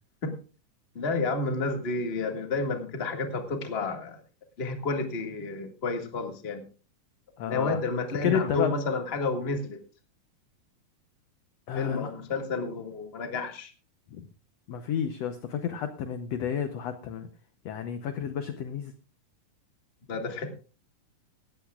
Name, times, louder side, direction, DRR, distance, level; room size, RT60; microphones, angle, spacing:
voice 1, 0.9-4.2 4.6-6.6 7.5-9.8 11.7-13.7 20.1-20.5, left 3 dB, 25° left, 5 dB, 1.4 m, -30 dB
voice 2, 7.4-7.8 8.2-8.8 11.7-12.1 14.1-14.3 14.7-17.3 17.7-18.9, left 8 dB, 70° left, 9 dB, 1.6 m, -31 dB
18.5 x 14.5 x 2.4 m, 0.35 s
omnidirectional pair, 3.9 m